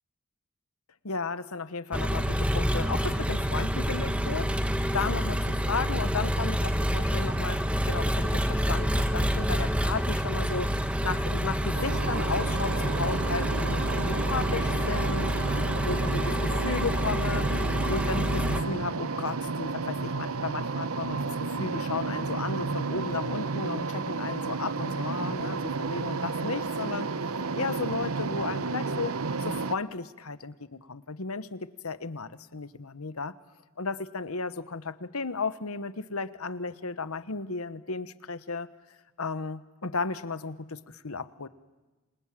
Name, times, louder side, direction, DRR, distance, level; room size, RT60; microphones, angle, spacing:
voice 1, 1.0-15.3 15.8-17.5 17.9-27.1 27.5-29.1 29.4-33.3 33.8-38.7 39.2-41.5, left 4 dB, 80° left, 13 dB, 1.2 m, -34 dB
Engine, 1.9-18.6, equal, 5° right, 1.2 m, -28 dB
sound 1, 11.7-29.7, right 4 dB, 75° right, 0.8 m, -32 dB
28.0 x 27.5 x 7.5 m, 1.2 s
head